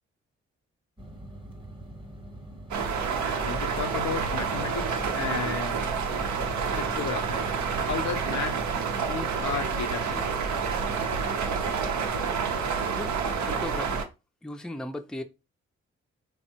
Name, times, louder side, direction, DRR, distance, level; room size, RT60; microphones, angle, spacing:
sound 1, 1.0-13.6, right 1 dB, 15° right, 0.8 m, -44 dB
sound 2, 2.7-14.0, right 5 dB, 75° right, 0.6 m, -29 dB
voice 1, 3.1-5.8 6.7-7.4 7.8-8.5 9.0-10.3, left 7 dB, 75° left, 0.6 m, -34 dB
voice 2, 13.4-14.0 14.4-15.2, left 1 dB, ahead, 0.4 m, -36 dB
3.4 x 2.0 x 2.8 m
supercardioid pair, 50°, 29 cm